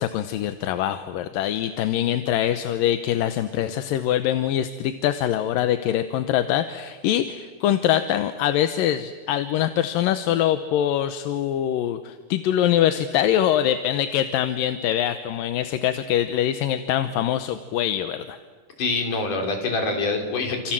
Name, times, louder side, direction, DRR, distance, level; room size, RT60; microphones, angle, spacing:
voice 1, 0.0-18.4, left 11 dB, 75° left, 9 dB, 2.5 m, -23 dB
voice 2, 18.8-20.7, left 3 dB, 55° left, 3 dB, 5.3 m, -25 dB
29.0 x 27.5 x 7.6 m, 1.5 s
omnidirectional pair, 4.3 m